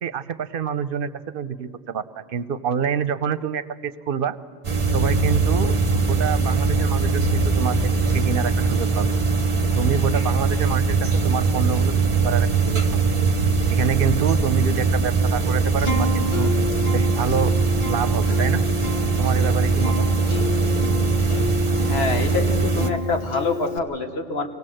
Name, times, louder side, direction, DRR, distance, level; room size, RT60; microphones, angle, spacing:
voice 1, 0.0-4.4 4.9-9.1 9.6-11.0 11.2-12.8 13.7-16.5 16.9-17.6 17.9-18.7 19.2-20.1, right 7 dB, 65° right, 14 dB, 0.9 m, -27 dB
sound 1, 4.6-22.9, right 4 dB, 35° right, 0.9 m, -21 dB
Acoustic guitar, 15.8-23.8, left 3 dB, 50° left, 1.4 m, -29 dB
voice 2, 21.8-24.6, left 3 dB, 85° left, 5 dB, 1.7 m, -26 dB
24.0 x 18.0 x 7.7 m, 2.1 s
omnidirectional pair, 1.0 m